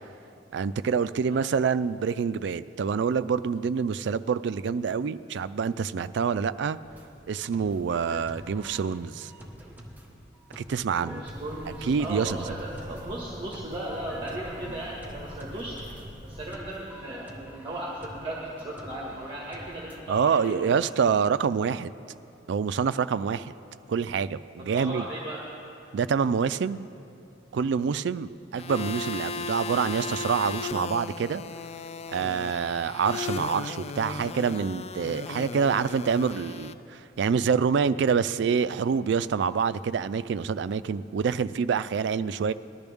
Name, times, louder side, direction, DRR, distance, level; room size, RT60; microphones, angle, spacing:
voice 1, 0.5-6.8 7.3-9.3 10.6-11.2 11.8-12.4 20.1-21.9 22.5-23.5 23.9-25.0 25.9-26.9 27.5-31.4 32.1-42.5, right 6 dB, 70° right, 14 dB, 0.3 m, -26 dB
sound 1, 6.8-20.0, equal, 10° right, 1.3 m, -47 dB
voice 2, 10.9-15.8 16.2-20.9 24.6-25.4, right 1 dB, 25° right, -4 dB, 1.7 m, -37 dB
Bird, 11.3-16.5, equal, 45° right, 1.5 m, -44 dB
sound 2, 28.6-36.7, left 4 dB, 35° left, 0.4 m, -36 dB
20.0 x 12.0 x 3.5 m, 2.7 s
head